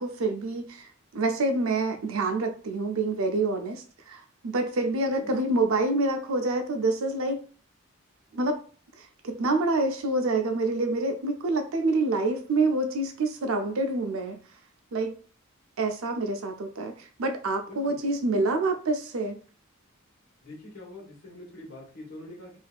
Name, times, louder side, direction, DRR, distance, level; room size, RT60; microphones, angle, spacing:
voice 1, 0.0-7.4 8.3-8.6 9.0-14.4 14.9-15.1 15.8-16.9 17.2-19.4, right 2 dB, 80° right, 6 dB, 0.5 m, -27 dB
voice 2, 17.7-18.0 20.4-22.6, left 1 dB, 90° left, -3 dB, 1.2 m, -44 dB
3.5 x 2.6 x 2.3 m, 0.40 s
head